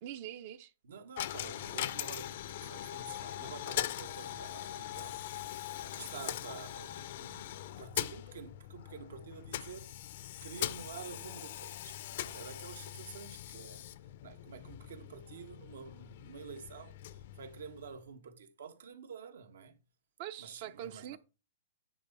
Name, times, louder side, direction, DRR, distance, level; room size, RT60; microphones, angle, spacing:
voice 1, 0.0-0.7 20.2-21.2, right 11 dB, 45° right, 0.6 m, -43 dB
voice 2, 0.8-2.3 2.6-13.9 14.2-19.8 20.4-21.2, right 6 dB, 80° right, 1.5 m, -49 dB
Coin (dropping), 1.2-18.1, left 13 dB, 50° left, 0.5 m, -41 dB
9.9 x 4.1 x 5.4 m
hypercardioid pair, 160°, 0 cm